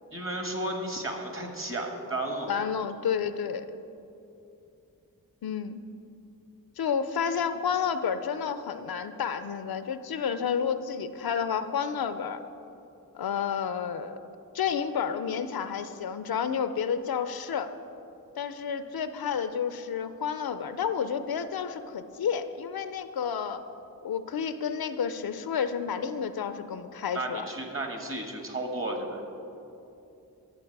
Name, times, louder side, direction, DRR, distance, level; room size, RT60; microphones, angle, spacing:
voice 1, 0.1-2.8 27.1-29.2, right 1 dB, 35° right, 3 dB, 1.6 m, -33 dB
voice 2, 2.5-3.7 5.4-5.8 6.8-12.4 13.1-14.2 14.5-17.7 18.4-23.6 24.0-27.4, left 7 dB, 75° left, 11 dB, 0.5 m, -30 dB
12.5 x 6.8 x 4.7 m, 2.8 s
cardioid pair, 40°, 37 cm